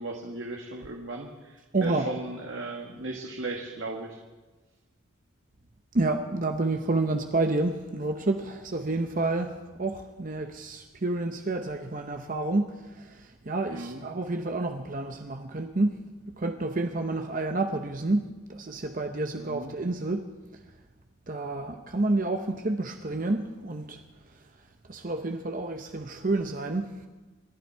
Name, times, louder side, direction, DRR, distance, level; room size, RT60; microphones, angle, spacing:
voice 1, 0.0-4.2 13.7-14.0 19.4-19.7, right 2 dB, 65° right, 1.6 m, -36 dB
voice 2, 1.7-2.1 5.9-16.1 16.4-20.6 21.3-24.0 24.9-27.0, right 2 dB, 40° right, 0.8 m, -29 dB
27.0 x 11.5 x 4.6 m
head